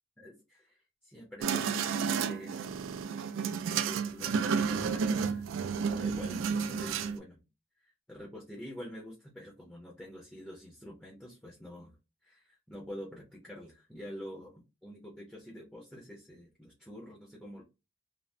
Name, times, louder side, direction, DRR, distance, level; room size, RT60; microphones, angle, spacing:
voice 1, 0.2-2.7 3.5-5.5 5.9-7.4 7.8-12.0 12.2-17.6, equal, 5° left, -3 dB, 0.6 m, -47 dB
sound 1, 1.4-7.2, right 6 dB, 75° right, 0.3 m, -31 dB
3.3 x 2.0 x 2.6 m, 0.27 s
head